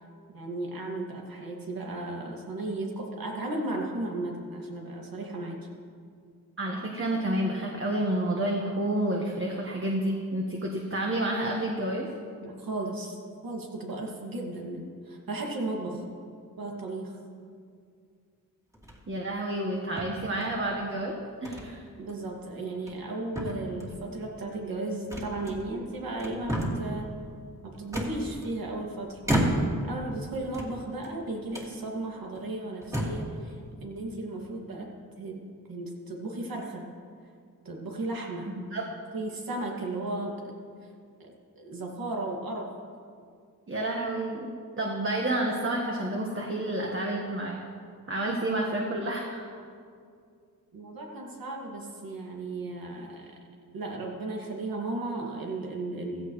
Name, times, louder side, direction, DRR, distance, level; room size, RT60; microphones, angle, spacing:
voice 1, 0.3-5.6 12.4-16.0 16.6-17.2 22.0-27.1 27.6-29.2 29.8-36.9 37.6-38.6 39.1-40.5 41.6-42.7 50.7-53.3 53.7-56.3, right 2 dB, 75° right, -1 dB, 2.3 m, -35 dB
voice 2, 6.6-12.1 19.1-21.8 38.6-38.8 43.7-47.6 48.1-49.4, right 1 dB, 35° right, -1 dB, 1.6 m, -30 dB
sound 1, 18.7-19.2 20.0-20.7 21.4-21.7 22.1-22.2 22.7-23.1 23.3-24.1 25.1-25.8 26.2-26.9 27.9-28.7 29.2-29.9 30.4-31.1 31.5-31.7 32.3-32.4 32.8-33.3, right 1 dB, 10° right, 2.3 m, -31 dB
16.0 x 15.0 x 3.2 m, 2.3 s
cardioid pair, 80°, 36 cm